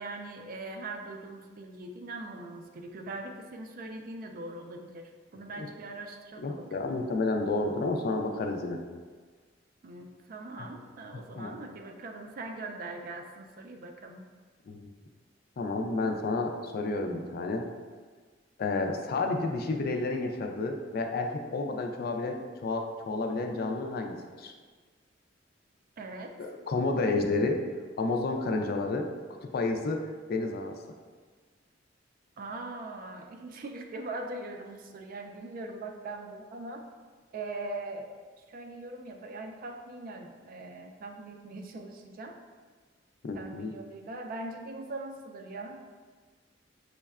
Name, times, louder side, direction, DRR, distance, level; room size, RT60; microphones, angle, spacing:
voice 1, 0.0-7.0 9.8-14.3 26.0-26.4 32.4-36.8 37.3-38.1 38.5-42.4 43.3-45.8, right 2 dB, 50° right, 4 dB, 0.4 m, -41 dB
voice 2, 6.4-8.8 10.6-10.7 11.4-11.5 14.7-14.9 15.6-17.7 18.6-24.5 26.4-27.6 28.0-29.1 29.4-30.8 43.2-43.7, left 3 dB, 55° left, 3 dB, 0.4 m, -30 dB
6.2 x 2.1 x 2.3 m, 1.5 s
head